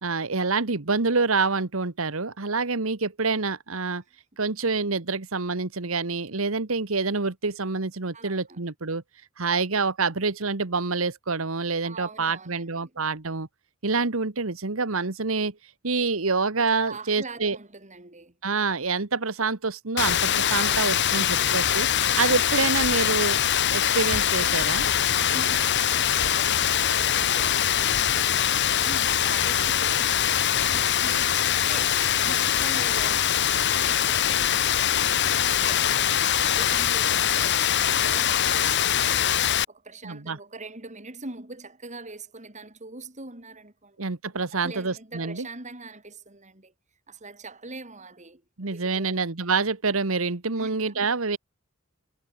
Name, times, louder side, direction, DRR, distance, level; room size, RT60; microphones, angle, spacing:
voice 1, 0.0-4.0 4.4-9.0 9.4-13.5 13.8-15.6 15.8-17.6 18.4-21.9 22.2-23.4 23.7-24.9 40.0-40.4 44.0-45.5 48.6-51.4, right 4 dB, 75° right, 1.5 m, -27 dB
voice 2, 8.1-8.6 11.8-12.9 16.6-18.4 20.5-21.2 25.1-34.9 35.3-44.0 44.6-46.7 47.1-48.4 48.7-49.2 50.6-51.1, right 3 dB, 35° right, 5.3 m, -43 dB
Rain, 20.0-39.6, left 10 dB, 55° left, 1.5 m, -23 dB
head